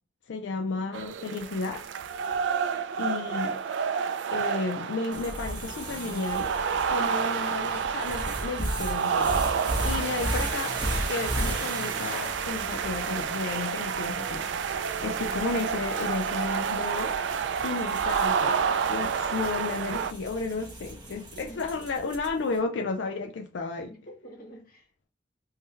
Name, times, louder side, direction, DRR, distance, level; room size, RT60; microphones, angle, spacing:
voice 1, 0.3-1.9 3.0-3.6 4.3-6.5 6.9-10.8 11.1-14.5 15.0-17.1 17.6-18.6 18.9-23.9, left 3 dB, 80° left, 0.4 m, -33 dB
sound 1, 0.9-20.1, right 6 dB, 75° right, 0.3 m, -29 dB
voice 2, 3.0-3.6 21.1-22.1 23.9-24.9, equal, 55° left, 1.3 m, -50 dB
sound 2, 5.1-22.5, right 1 dB, 25° right, 1.0 m, -36 dB
3.7 x 2.7 x 3.1 m
head